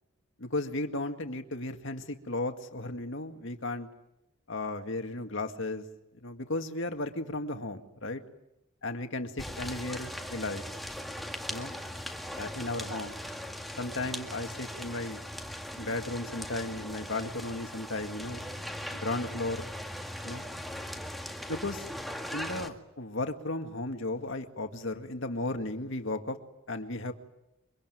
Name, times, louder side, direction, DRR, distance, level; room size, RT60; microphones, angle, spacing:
voice 1, 0.4-3.9 4.5-5.8 6.2-8.2 8.8-10.6 11.5-11.7 12.4-13.2 13.8-15.2 15.8-18.5 19.0-19.7 20.2-20.5 21.5-21.9 22.3-26.4 26.7-27.1, left 2 dB, 60° left, 6 dB, 2.1 m, -35 dB
sound 1, 9.4-22.7, equal, ahead, 1.8 m, -39 dB
24.5 x 24.0 x 9.3 m, 0.90 s
head